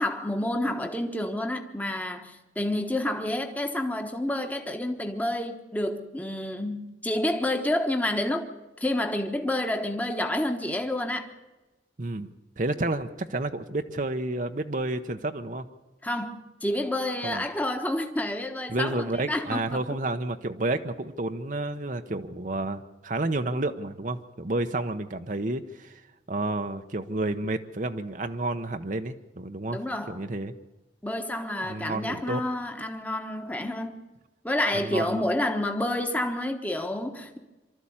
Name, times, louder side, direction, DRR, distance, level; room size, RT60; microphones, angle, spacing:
voice 1, 0.0-8.5 8.8-11.3 16.0-19.8 29.7-30.3 31.0-34.0 34.4-37.4, left 1 dB, 10° left, 1.2 m, -29 dB
voice 2, 12.0-15.7 17.2-17.4 18.7-26.0 26.3-29.8 30.1-30.5 31.6-32.4 34.7-35.2, right 2 dB, 45° right, 0.8 m, -30 dB
24.5 x 13.0 x 8.7 m
head